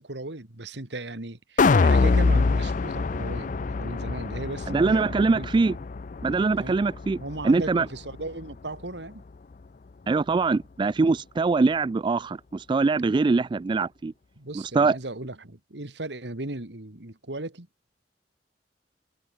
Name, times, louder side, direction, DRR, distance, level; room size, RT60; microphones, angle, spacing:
voice 1, 0.0-5.6 6.6-6.8 7.2-9.2 14.4-17.7, right 2 dB, 80° right, 2.4 m, -36 dB
sound 1, 1.6-7.8 8.2-8.3, left 4 dB, 45° left, 0.5 m, -24 dB
voice 2, 4.7-5.8 6.2-7.2 7.4-7.9 10.1-14.1 14.7-15.0, right 3 dB, 25° right, 0.3 m, -23 dB
head